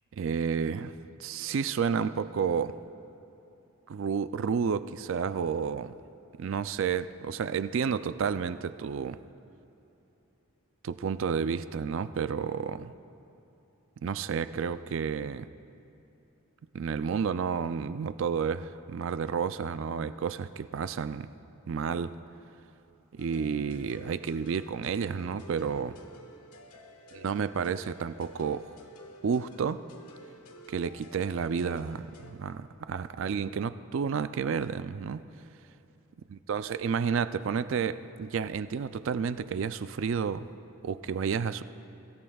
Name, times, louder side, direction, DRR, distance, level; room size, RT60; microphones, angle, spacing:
voice 1, 0.1-0.9 1.2-2.8 3.9-5.9 6.4-9.2 10.8-12.9 14.0-15.4 16.7-21.3 21.7-22.2 23.1-26.0 27.1-28.8 29.2-29.8 30.7-35.2 36.3-40.5 40.8-41.6, right 6 dB, 60° right, 13 dB, 0.3 m, -31 dB
sound 1, 23.2-32.3, left 1 dB, 90° left, 1.4 m, -51 dB
23.5 x 17.0 x 2.3 m, 2.9 s
head